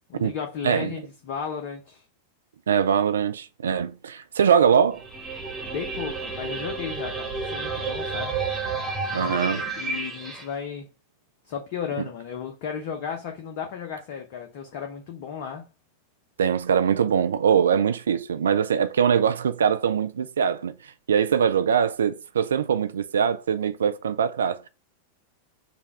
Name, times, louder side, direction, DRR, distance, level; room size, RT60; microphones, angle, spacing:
voice 1, 0.1-2.0 5.6-8.4 9.1-10.9 11.5-15.7, left 7 dB, 45° left, 0.7 m, -34 dB
voice 2, 2.7-5.0 9.1-9.6 16.4-24.6, right 7 dB, 65° right, 0.3 m, -22 dB
sound 1, 4.9-10.4, right 4 dB, 15° right, 1.3 m, -31 dB
5.0 x 2.3 x 4.6 m
figure-of-eight pair, 90°, 0 cm